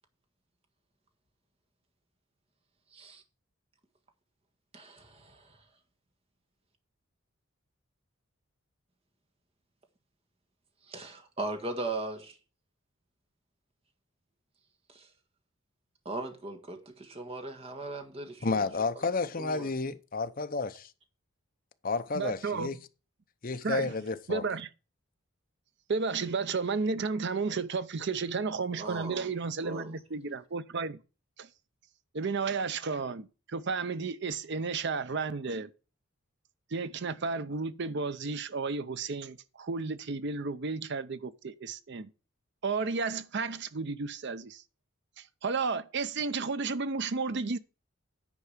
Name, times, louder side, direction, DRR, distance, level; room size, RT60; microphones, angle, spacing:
voice 1, 2.9-3.2 4.7-5.6 10.9-12.4 14.9-15.1 16.0-18.5 19.4-19.7 28.8-29.3 29.6-29.9, right 2 dB, 30° right, 1.5 m, -38 dB
voice 2, 18.4-20.7 21.8-22.8 23.4-24.4, left 4 dB, 40° left, 0.8 m, -31 dB
voice 3, 22.1-22.7 23.6-23.9 24.3-24.7 25.9-31.0 31.4-31.5 32.1-35.7 36.7-42.1 42.6-44.6 45.2-47.6, right 4 dB, 55° right, 0.6 m, -33 dB
9.9 x 4.8 x 7.3 m
head